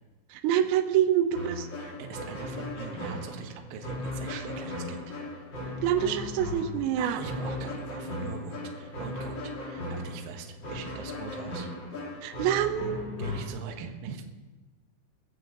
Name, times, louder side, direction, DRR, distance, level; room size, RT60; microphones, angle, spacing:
voice 1, 0.3-1.7 5.8-7.2 12.2-13.0, right 10 dB, 85° right, 8 dB, 3.5 m, -26 dB
sound 1, 1.3-13.5, left 1 dB, 35° left, 2.1 m, -37 dB
voice 2, 1.8-5.1 7.0-11.7 13.2-14.2, right 6 dB, 65° right, 4 dB, 2.3 m, -42 dB
19.5 x 7.4 x 7.6 m, 1.2 s
omnidirectional pair, 5.8 m